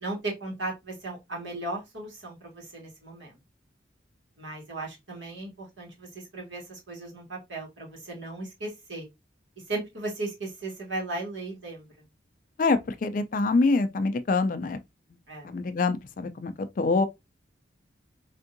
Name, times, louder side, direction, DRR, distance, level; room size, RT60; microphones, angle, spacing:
voice 1, 0.0-3.4 4.4-9.1 9.7-11.9 15.3-15.5, right 2 dB, 75° right, 1.6 m, -36 dB
voice 2, 12.6-14.8 15.4-17.1, left 3 dB, 45° left, 0.3 m, -25 dB
3.5 x 2.6 x 2.5 m
head